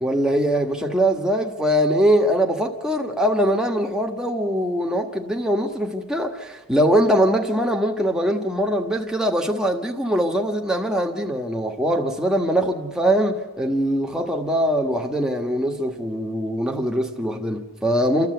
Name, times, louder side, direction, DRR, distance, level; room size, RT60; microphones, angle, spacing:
voice 1, 0.0-18.3, equal, 5° right, 1.6 m, -22 dB
29.5 x 13.5 x 8.0 m
head